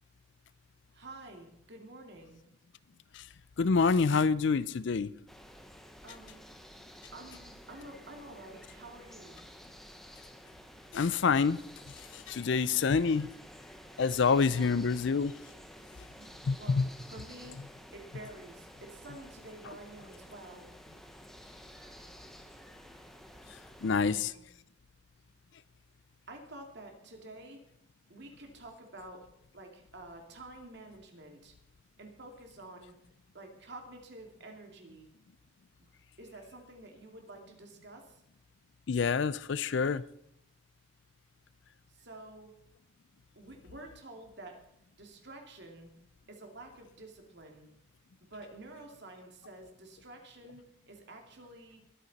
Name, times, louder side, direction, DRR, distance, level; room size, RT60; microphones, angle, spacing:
voice 1, 0.9-2.4 6.0-6.4 7.1-9.4 14.4-14.7 16.2-16.3 16.6-16.8 17.1-17.6 17.9-20.7 23.9-24.5 26.3-27.6 28.1-29.3 29.5-31.5 32.0-33.0 33.3-35.1 36.2-38.2 41.9-42.5 43.4-44.6 45.0-45.9 46.3-47.7 48.3-51.8, right 2 dB, 55° right, 2.5 m, -49 dB
voice 2, 3.6-5.1 10.9-11.6 12.1-13.3 14.0-15.3 16.5-16.9 23.8-24.3 38.9-40.0, left 5 dB, 55° left, 0.4 m, -27 dB
sound 1, 5.3-24.2, equal, ahead, 0.9 m, -52 dB
21.0 x 9.1 x 4.1 m
head